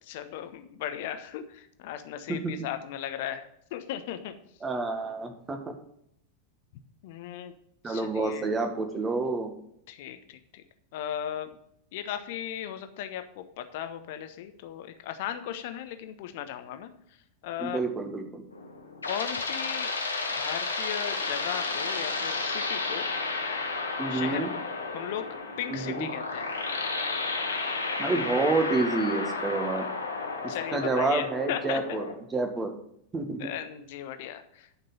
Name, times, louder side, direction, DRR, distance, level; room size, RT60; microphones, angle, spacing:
voice 1, 0.0-3.4 3.7-4.3 7.0-7.5 7.8-8.5 9.9-10.6 10.9-11.6 11.9-16.9 17.4-17.8 19.0-19.9 20.2-23.1 24.1-24.6 24.9-26.5 29.7-29.9 30.5-32.0 33.4-34.7, left 10 dB, 50° left, 9 dB, 1.1 m, -37 dB
voice 2, 4.6-5.6 7.8-9.5 17.6-18.4 24.0-24.5 25.7-26.1 28.0-29.9 30.4-32.0 32.3-32.7 33.1-33.5, right 3 dB, 15° right, 5 dB, 1.7 m, -28 dB
sound 1, 18.5-32.1, left 3 dB, 75° left, 1.7 m, -32 dB
11.0 x 5.9 x 5.6 m, 0.73 s
figure-of-eight pair, 90°, 0 cm